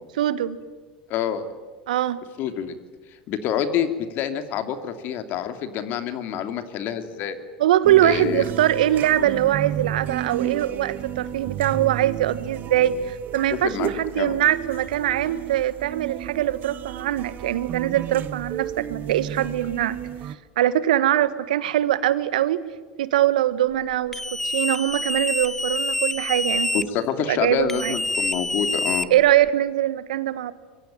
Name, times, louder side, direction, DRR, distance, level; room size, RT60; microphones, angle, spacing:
voice 1, 0.1-0.6 1.9-2.2 7.6-20.0 20.6-22.6 23.0-26.8 27.3-28.0 29.1-30.5, right 12 dB, 70° right, 15 dB, 1.4 m, -22 dB
voice 2, 1.1-1.5 2.4-2.7 3.3-7.4 8.0-8.4 13.5-13.9 14.1-14.4 26.7-29.1, left 9 dB, 50° left, 9 dB, 2.8 m, -27 dB
sound 1, 7.8-20.4, right 10 dB, 40° right, 1.4 m, -33 dB
sound 2, 24.1-26.8 27.7-29.5, left 1 dB, 5° left, 1.1 m, -26 dB
25.5 x 23.0 x 9.2 m, 1.4 s
hypercardioid pair, 80°, 4 cm